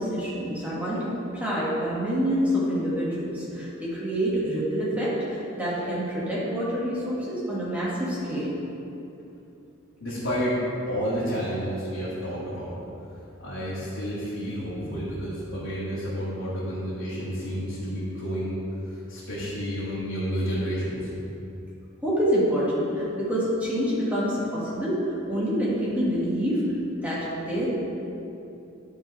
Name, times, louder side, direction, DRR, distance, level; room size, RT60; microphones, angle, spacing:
voice 1, 0.0-8.5 22.0-25.0 25.3-26.6 27.0-27.7, equal, 5° right, -8 dB, 1.9 m, -27 dB
voice 2, 10.0-12.8 13.4-18.6 18.8-21.1, equal, 65° left, -11 dB, 1.9 m, -30 dB
10.0 x 4.6 x 4.8 m, 2.9 s
head